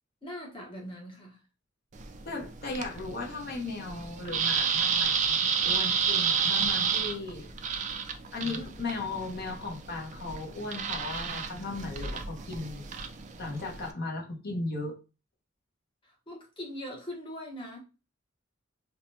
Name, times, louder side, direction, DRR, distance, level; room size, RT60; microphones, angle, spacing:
voice 1, 0.2-1.4 16.0-17.8, equal, 25° left, 0.9 m, -41 dB
sound 1, 1.9-13.9, right 6 dB, 35° right, 0.4 m, -31 dB
voice 2, 2.2-7.5 8.3-12.9 13.4-15.0, left 3 dB, 50° left, 1.0 m, -36 dB
3.6 x 2.2 x 2.7 m
head